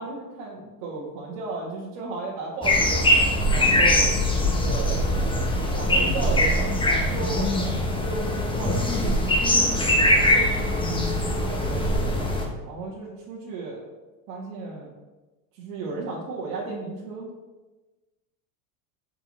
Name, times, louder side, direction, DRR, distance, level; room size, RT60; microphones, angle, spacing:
voice 1, 0.0-3.0 3.5-4.1 4.4-5.0 5.7-9.2 9.7-10.8 11.4-12.4 12.6-13.8 14.3-14.9 15.5-17.3, right 3 dB, 65° right, -6 dB, 1.7 m, -35 dB
sound 1, 2.6-12.5, left 1 dB, 10° left, 1.0 m, -22 dB
5.7 x 4.6 x 4.2 m, 1.2 s
supercardioid pair, 125°, 43 cm